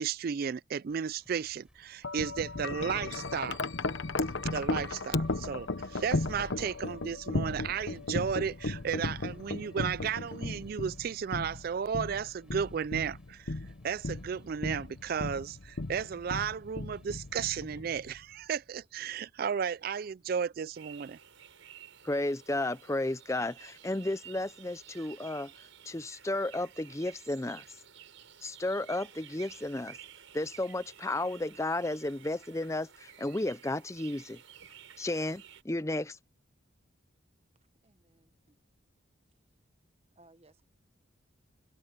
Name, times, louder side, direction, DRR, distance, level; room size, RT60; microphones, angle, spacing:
voice 1, 0.0-3.7 4.5-13.5 13.8-21.2, right 7 dB, 45° right, 0.3 m, -34 dB
sound 1, 0.9-17.8, equal, 5° right, 5.3 m, -66 dB
Wind chime, 2.0-18.2, left 2 dB, 65° left, 1.0 m, -36 dB
sound 2, 20.7-35.6, right 9 dB, 75° right, 5.7 m, -53 dB
voice 2, 22.0-25.5 25.8-27.6 28.4-30.0 30.3-34.4 35.0-36.2, left 2 dB, 15° left, 0.6 m, -33 dB
voice 3, 37.8-38.5 40.2-40.6, right 2 dB, 30° right, 1.1 m, -62 dB
head